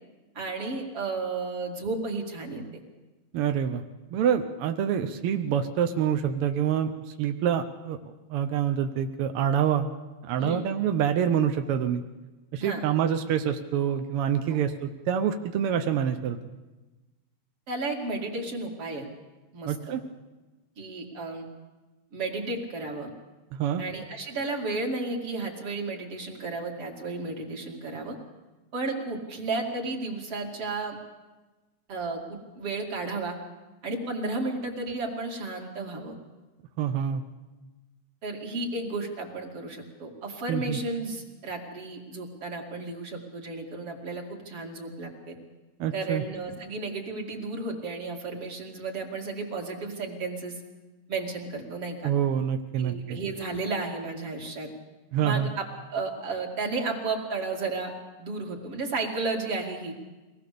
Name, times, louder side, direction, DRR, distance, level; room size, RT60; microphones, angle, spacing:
voice 1, 0.4-2.6 10.4-10.7 12.6-12.8 14.5-14.6 17.7-19.1 19.5-19.8 20.8-21.5 22.1-23.1 23.8-28.2 28.7-31.0 31.9-33.4 33.8-36.1 38.2-45.4 45.9-50.6 51.1-52.1 52.8-54.7 55.2-55.7 55.9-57.9 58.2-59.9, right 3 dB, 50° right, 0 dB, 3.4 m, -33 dB
voice 2, 3.3-3.8 4.1-6.9 7.2-9.9 10.2-12.0 12.5-16.4 19.7-20.0 23.5-23.8 36.8-37.2 40.5-40.8 45.8-46.2 52.0-53.2 55.1-55.5, right 8 dB, 70° right, 7 dB, 1.4 m, -26 dB
23.5 x 18.5 x 6.8 m, 1.2 s
omnidirectional pair, 3.4 m